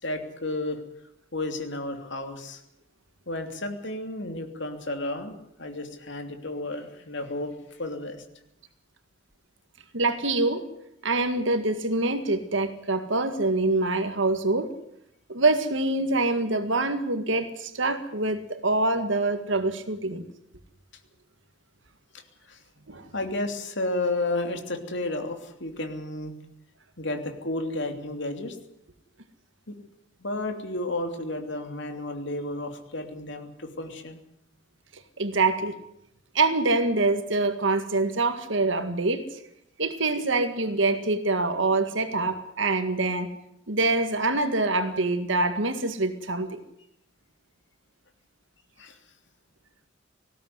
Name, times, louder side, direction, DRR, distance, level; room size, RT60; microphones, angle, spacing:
voice 1, 0.0-0.8 1.3-2.6 3.3-7.5 7.8-8.2 22.5-22.6 23.1-26.3 27.0-28.6 30.2-34.2 48.8-48.9, left 2 dB, 60° left, 5 dB, 3.0 m, -32 dB
voice 2, 9.9-10.6 11.0-14.7 15.3-20.2 22.9-23.1 35.2-35.7 36.3-39.2 39.8-43.3 43.7-46.6, right 2 dB, 65° right, 9 dB, 1.9 m, -25 dB
19.5 x 16.0 x 9.6 m, 0.78 s
head